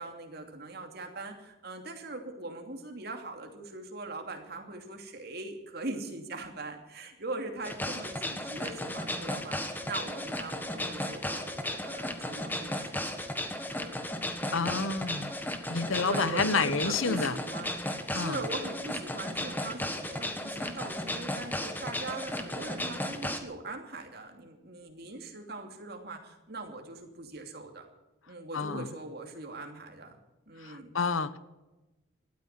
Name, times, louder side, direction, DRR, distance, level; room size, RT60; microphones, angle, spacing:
voice 1, 0.0-13.3 13.6-14.0 14.4-14.8 16.0-27.9 28.3-30.2 30.5-30.9, right 2 dB, 50° right, 4 dB, 2.8 m, -41 dB
sound 1, 7.6-23.4, left 1 dB, 10° left, 1.4 m, -35 dB
voice 2, 14.5-15.3 15.7-17.4 18.1-18.4 28.5-28.9 30.6-31.4, left 4 dB, 90° left, 14 dB, 1.1 m, -29 dB
17.5 x 13.0 x 6.0 m, 1.1 s
head